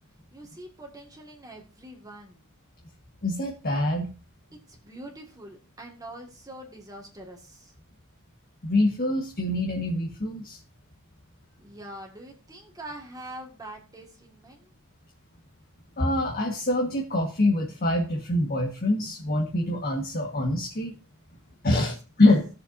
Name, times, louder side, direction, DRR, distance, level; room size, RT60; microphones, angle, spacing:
voice 1, 0.3-2.5 4.7-7.7 11.6-14.7 21.5-22.0, right 1 dB, 15° right, 1 dB, 1.7 m, -44 dB
voice 2, 3.2-4.1 8.6-10.6 16.0-21.0 21.6-22.5, left 1 dB, 45° left, 1 dB, 1.4 m, -25 dB
18.0 x 6.9 x 2.6 m, 0.34 s
head